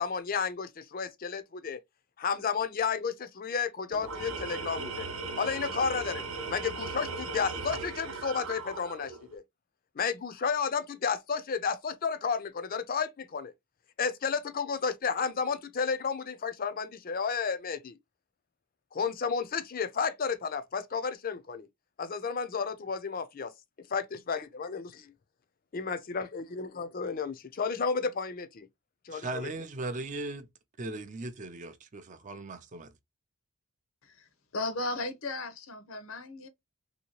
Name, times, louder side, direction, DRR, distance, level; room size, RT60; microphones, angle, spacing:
voice 1, 0.0-1.8 2.2-5.1 5.4-9.4 10.0-13.5 14.0-18.0 18.9-21.7 22.0-23.5 23.9-25.1 25.7-28.7 29.1-29.5, left 5 dB, 40° left, 0.4 m, -32 dB
Tools, 3.9-9.3, right 4 dB, 75° right, 0.6 m, -37 dB
voice 2, 29.1-30.5 30.8-32.9, right 2 dB, 35° right, 0.4 m, -38 dB
voice 3, 34.5-36.5, left 2 dB, 70° left, 0.7 m, -35 dB
3.1 x 2.8 x 2.9 m
head